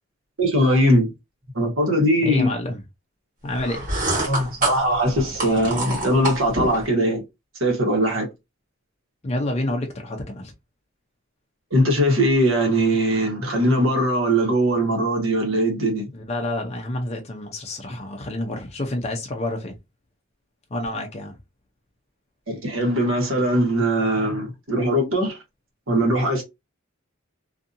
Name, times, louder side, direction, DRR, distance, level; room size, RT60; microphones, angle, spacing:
voice 1, 0.4-1.1 1.5-2.5 4.3-7.2 7.6-8.3 11.7-16.1 22.5-25.4 25.9-26.4, equal, 75° right, 1.2 m, -20 dB
voice 2, 2.2-2.8 3.4-3.9 9.2-10.5 16.1-19.8 20.7-21.4, left 1 dB, 30° left, 0.5 m, -28 dB
sound 1, 3.6-6.9, right 2 dB, 40° right, 1.6 m, -27 dB
2.6 x 2.5 x 2.6 m
head